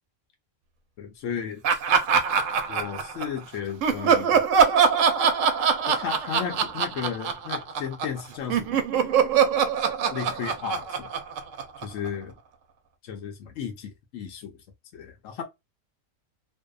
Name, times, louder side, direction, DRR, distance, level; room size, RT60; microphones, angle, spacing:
voice 1, 1.0-1.6 2.7-4.4 5.9-8.8 10.1-11.1 11.8-12.4 13.0-14.6 14.9-15.4, left 8 dB, 75° left, 0.9 m, -34 dB
Laughter, 1.6-3.4 3.8-8.2 8.5-12.1, right 6 dB, 75° right, 0.9 m, -23 dB
2.6 x 2.1 x 2.3 m
omnidirectional pair, 1.4 m